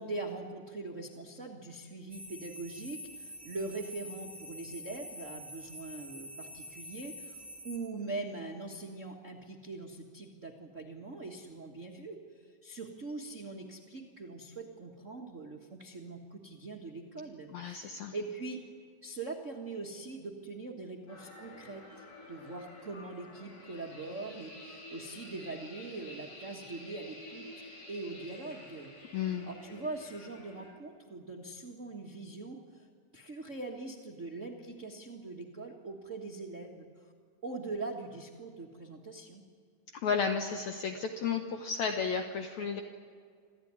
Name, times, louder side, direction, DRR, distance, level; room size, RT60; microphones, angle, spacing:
voice 1, 0.0-18.6 19.0-27.5 27.9-28.9 29.4-32.9 33.1-37.1 37.4-39.4, right 3 dB, 45° right, 1 dB, 0.9 m, -42 dB
sound 1, 2.1-7.8, left 1 dB, ahead, 6.3 m, -47 dB
voice 2, 17.5-18.1 29.1-29.5 39.9-42.8, left 6 dB, 65° left, 5 dB, 2.1 m, -33 dB
sound 2, 21.1-30.7, left 1 dB, 90° left, 5.9 m, -50 dB
26.5 x 15.5 x 9.6 m, 2.1 s
omnidirectional pair, 3.9 m